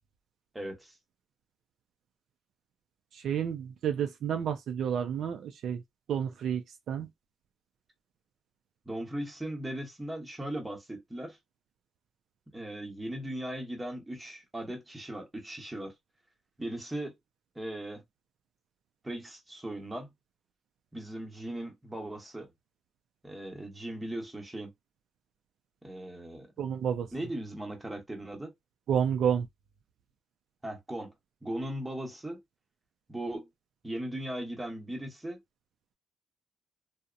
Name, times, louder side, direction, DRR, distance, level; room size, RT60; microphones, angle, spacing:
voice 1, 0.5-0.9 8.9-11.4 12.5-15.9 16.6-17.1 17.5-18.0 19.0-20.1 20.9-22.5 23.2-24.7 25.8-26.5 27.1-28.5 30.6-31.1 31.4-32.4 33.1-33.5 33.8-35.4, right 1 dB, 15° right, 0.9 m, -38 dB
voice 2, 3.1-5.8 6.1-7.1 26.6-27.1 28.9-29.5, right 8 dB, 70° right, 0.4 m, -30 dB
2.8 x 2.0 x 2.4 m
cardioid pair, 90°, 0 cm